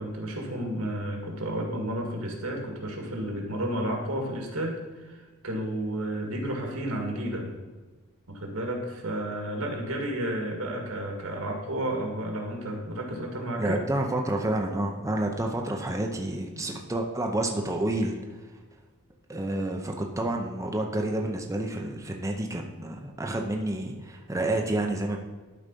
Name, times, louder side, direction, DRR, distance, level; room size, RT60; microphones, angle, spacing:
voice 1, 0.0-7.5 8.3-13.8 16.3-16.8, right 1 dB, 80° right, 1 dB, 1.9 m, -32 dB
voice 2, 13.6-18.2 19.3-25.2, right 1 dB, 15° right, 1 dB, 0.6 m, -29 dB
11.5 x 4.0 x 5.2 m, 1.3 s
head